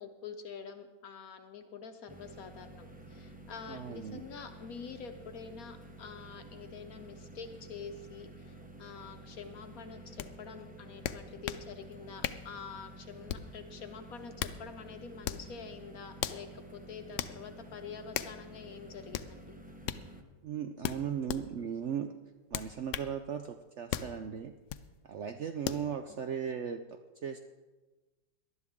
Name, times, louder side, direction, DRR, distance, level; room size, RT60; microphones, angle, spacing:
voice 1, 0.0-8.5 8.8-19.6 26.1-26.3, left 6 dB, 65° left, 7 dB, 1.1 m, -47 dB
sound 1, 2.1-20.2, right 1 dB, 10° right, 0.5 m, -51 dB
voice 2, 3.7-4.2 20.4-22.1 22.5-24.5 25.0-27.4, right 8 dB, 75° right, 7 dB, 0.6 m, -37 dB
sound 2, 10.2-10.3 11.0-11.7 12.2-12.5 13.3-13.6 14.2-14.6 15.2-15.5 16.2-16.4 17.2-17.4 18.1-18.4 19.1-19.3 19.8-20.0 20.8-21.4 22.5-23.1 23.9-24.1 24.7-24.9 25.6-25.9, left 12 dB, 85° left, 1.2 m, -36 dB
19.0 x 11.5 x 3.6 m, 1.3 s
omnidirectional pair, 1.8 m